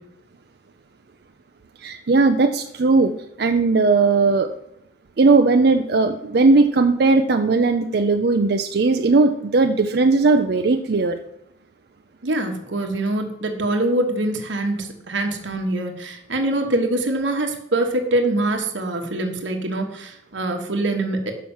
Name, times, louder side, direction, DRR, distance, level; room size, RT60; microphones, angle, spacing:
voice 1, 1.8-3.1 3.4-4.5 5.2-11.2, right 3 dB, 55° right, 6 dB, 0.5 m, -17 dB
voice 2, 12.2-21.3, right 1 dB, 80° right, 3 dB, 1.2 m, -24 dB
6.2 x 5.8 x 7.1 m, 0.77 s
head